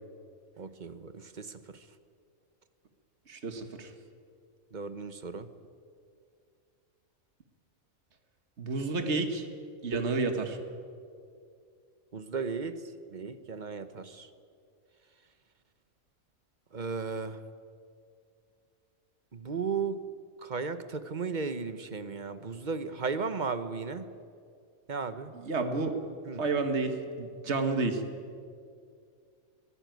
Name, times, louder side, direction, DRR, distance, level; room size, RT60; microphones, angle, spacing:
voice 1, 0.6-1.6 4.7-5.5 12.1-12.8 13.1-14.3 16.7-17.4 19.3-20.0 20.4-24.0 24.9-25.3 26.3-26.5, right 5 dB, 35° right, 11 dB, 1.1 m, -35 dB
voice 2, 3.3-3.9 8.6-9.5 9.8-10.6 25.3-25.9 26.4-28.0, right 3 dB, 55° right, 6 dB, 1.9 m, -30 dB
22.5 x 16.0 x 9.3 m, 2.3 s
omnidirectional pair, 1.4 m